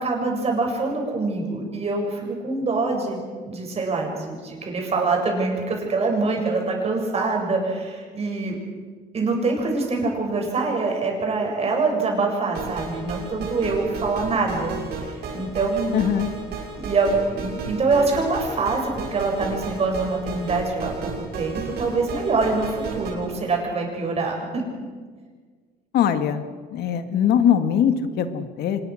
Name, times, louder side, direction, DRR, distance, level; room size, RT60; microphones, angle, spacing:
voice 1, 0.0-8.6 9.1-16.0 16.7-24.6, right 3 dB, 40° right, 1 dB, 7.3 m, -25 dB
sound 1, 12.6-23.1, right 4 dB, 75° right, 6.0 m, -33 dB
voice 2, 15.9-16.3 25.9-26.4 26.7-28.8, left 9 dB, 70° left, 9 dB, 1.9 m, -21 dB
25.0 x 20.5 x 6.5 m, 1.5 s
cardioid pair, 110°, 17 cm